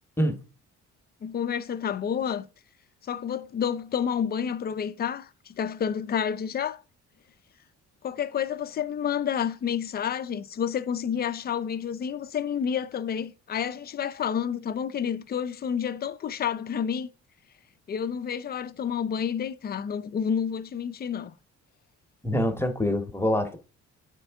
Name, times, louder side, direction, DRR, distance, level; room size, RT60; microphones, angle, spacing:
voice 1, 1.2-2.5 3.0-6.8 8.0-17.1 17.9-21.3, left 8 dB, 35° left, 0.4 m, -29 dB
voice 2, 22.2-23.6, equal, 10° left, 0.9 m, -25 dB
8.1 x 4.4 x 3.5 m
cardioid pair, 90°, 30 cm